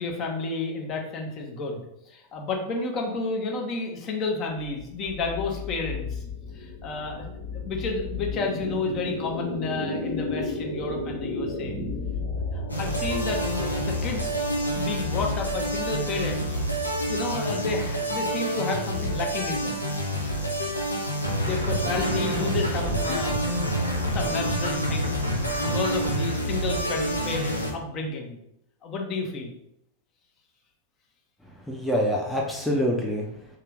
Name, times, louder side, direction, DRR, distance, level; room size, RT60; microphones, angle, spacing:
voice 1, 0.0-6.2 6.5-7.2 7.5-11.8 12.5-14.4 14.7-16.6 17.0-19.9 21.4-25.2 25.6-28.4 28.8-29.5, left 3 dB, 35° left, 1 dB, 0.8 m, -31 dB
sound 1, 4.6-17.8, left 3 dB, 65° left, 1.3 m, -34 dB
sound 2, 12.7-27.7, equal, 85° left, 0.6 m, -28 dB
sound 3, 21.2-27.6, right 1 dB, 90° right, 0.7 m, -31 dB
voice 2, 31.4-33.6, equal, ahead, -3 dB, 0.6 m, -27 dB
3.6 x 2.8 x 3.4 m, 0.77 s
figure-of-eight pair, 90°, 0 cm